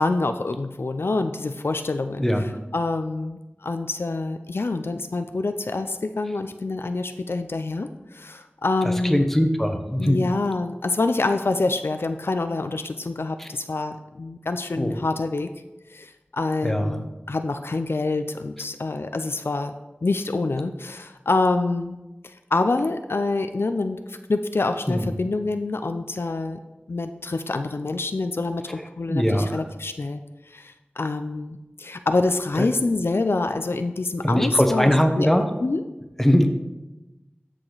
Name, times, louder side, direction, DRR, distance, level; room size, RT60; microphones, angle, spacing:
voice 1, 0.0-2.3 2.7-9.2 10.0-15.5 15.9-19.7 20.0-22.0 22.5-26.6 26.9-30.2 30.5-35.3 35.6-35.8, left 3 dB, 70° left, 8 dB, 0.5 m, -26 dB
voice 2, 9.0-10.2 13.4-13.5 14.8-15.0 16.6-17.0 24.9-25.1 29.1-29.6 32.6-32.7 34.2-35.5 36.2-36.5, equal, 5° left, 5 dB, 1.0 m, -21 dB
13.5 x 4.9 x 4.0 m, 1.0 s
wide cardioid pair, 55°, 4 cm